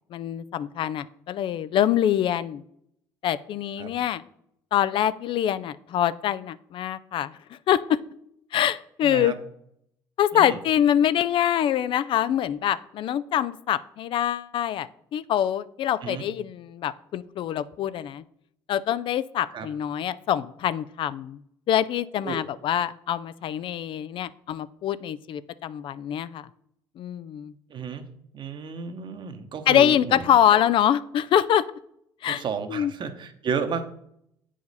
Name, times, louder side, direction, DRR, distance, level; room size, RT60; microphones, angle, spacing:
voice 1, 0.1-2.6 3.2-4.2 4.7-7.4 7.7-8.0 8.5-9.3 10.2-18.2 18.7-21.4 21.7-26.5 27.0-27.5 29.7-31.6 32.2-32.4 32.7-32.9, left 10 dB, 55° left, 16 dB, 0.4 m, -24 dB
voice 2, 9.0-9.4 10.3-10.6 16.0-16.3 19.5-19.7 22.2-22.4 27.7-28.0 28.3-30.3 30.5-30.6 32.3-33.8, right 6 dB, 50° right, 8 dB, 1.0 m, -32 dB
8.1 x 5.0 x 4.0 m, 0.73 s
supercardioid pair, 70°, 10 cm